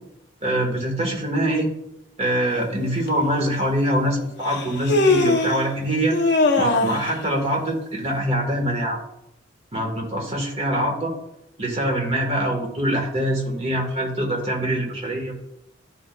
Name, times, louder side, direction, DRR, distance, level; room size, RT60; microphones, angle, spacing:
voice 1, 0.4-1.7 2.2-6.2 6.6-9.0 9.7-11.1 11.6-15.3, right 1 dB, 30° right, 0 dB, 1.3 m, -24 dB
Human voice, 3.1-3.2 4.4-5.6 6.1-7.1, left 2 dB, 55° left, 0.7 m, -20 dB
11.5 x 4.0 x 2.2 m, 0.84 s
head